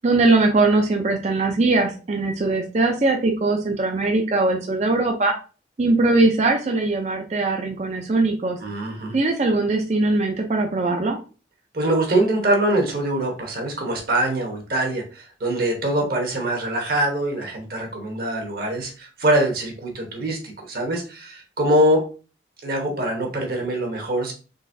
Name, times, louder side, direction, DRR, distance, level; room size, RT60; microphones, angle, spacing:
voice 1, 0.0-5.3 5.8-8.6 9.1-11.2, right 2 dB, 40° right, 3 dB, 0.5 m, -20 dB
voice 2, 8.6-9.1 11.7-22.1 22.6-24.3, right 1 dB, 55° right, 2 dB, 1.0 m, -23 dB
3.9 x 3.3 x 2.6 m, 0.35 s
head